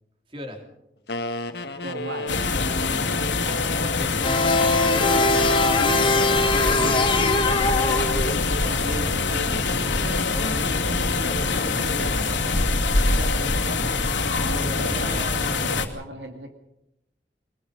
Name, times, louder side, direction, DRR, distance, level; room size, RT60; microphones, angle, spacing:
voice 1, 0.3-0.6 3.4-4.5 5.1-5.5 10.3-14.0 14.6-15.7, equal, 30° right, 3 dB, 3.6 m, -37 dB
sound 1, 1.1-4.2 4.7-7.6 8.2-11.8, left 2 dB, 60° left, 1.6 m, -34 dB
voice 2, 1.8-3.2 4.9-5.5 5.8-7.2 7.6-10.2 11.8-12.4 13.7-14.0 14.5-15.2 15.6-16.5, right 1 dB, 75° right, 4 dB, 2.2 m, -37 dB
sound 2, 2.3-15.9, left 3 dB, 90° left, 2.4 m, -24 dB
sound 3, 4.2-8.6, left 2 dB, 25° left, 1.3 m, -22 dB
24.0 x 20.5 x 5.4 m, 0.84 s
head